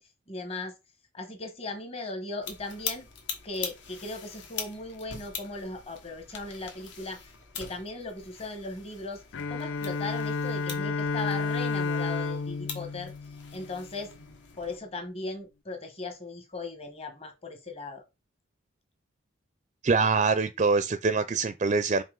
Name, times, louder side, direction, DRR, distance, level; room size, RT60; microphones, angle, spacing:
voice 1, 0.3-0.7 1.1-3.1 3.4-7.3 7.6-9.2 9.5-13.1 13.5-14.1 14.6-18.0, left 3 dB, 30° left, 1.2 m, -38 dB
sound 1, 2.4-14.8, left 6 dB, 70° left, 1.4 m, -43 dB
Bowed string instrument, 9.3-14.0, left 4 dB, 85° left, 0.5 m, -31 dB
voice 2, 19.8-22.0, right 4 dB, 35° right, 0.4 m, -24 dB
5.5 x 4.7 x 3.8 m
head